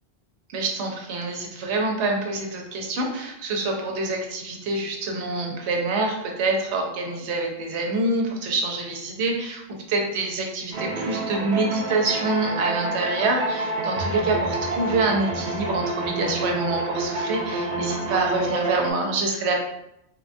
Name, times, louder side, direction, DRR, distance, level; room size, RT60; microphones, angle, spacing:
voice 1, 0.5-19.6, right 2 dB, 85° right, 2 dB, 0.9 m, -26 dB
sound 1, 10.7-18.9, right 2 dB, 60° right, 0.7 m, -28 dB
3.3 x 2.2 x 2.5 m, 0.84 s
omnidirectional pair, 1.1 m